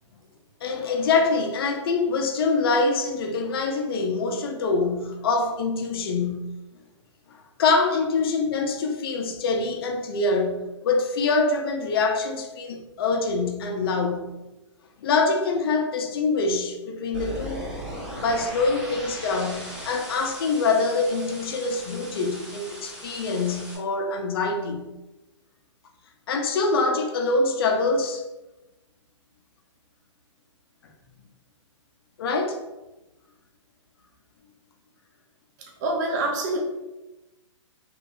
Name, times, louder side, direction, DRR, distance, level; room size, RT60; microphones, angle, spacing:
voice 1, 0.6-6.5 7.6-10.6 10.8-14.3 15.0-17.6 18.2-24.8 26.3-28.2 32.2-32.6, left 3 dB, 50° left, 4 dB, 0.5 m, -24 dB
sound 1, 17.1-23.8, equal, 5° right, 1.1 m, -38 dB
voice 2, 35.6-36.6, right 2 dB, 35° right, 0 dB, 0.5 m, -26 dB
3.2 x 3.1 x 2.5 m, 1.0 s
hypercardioid pair, 155°, 16 cm